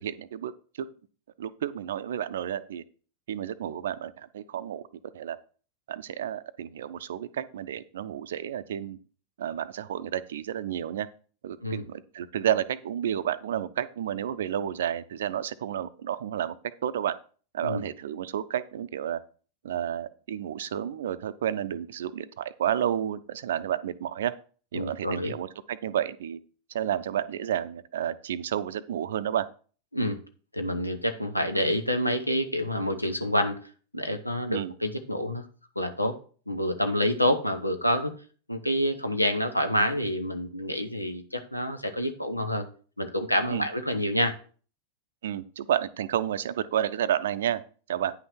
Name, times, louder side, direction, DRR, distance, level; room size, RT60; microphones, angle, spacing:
voice 1, 0.0-0.5 0.8-0.9 1.4-2.8 3.3-4.8 5.1-5.4 5.9-9.0 9.4-11.1 11.4-16.6 16.8-17.1 17.5-19.2 19.6-24.3 24.7-26.4 26.7-29.5 34.5-34.7 43.5-43.7 45.2-47.6 47.9-48.1, right 10 dB, 60° right, 14 dB, 0.6 m, -31 dB
voice 2, 24.7-25.3 29.9-30.2 30.5-33.6 33.9-35.4 35.8-36.2 36.5-38.1 38.5-42.6 43.0-44.3, equal, 85° left, 7 dB, 0.9 m, -27 dB
9.6 x 5.9 x 4.5 m, 0.41 s
figure-of-eight pair, 90°, 0 cm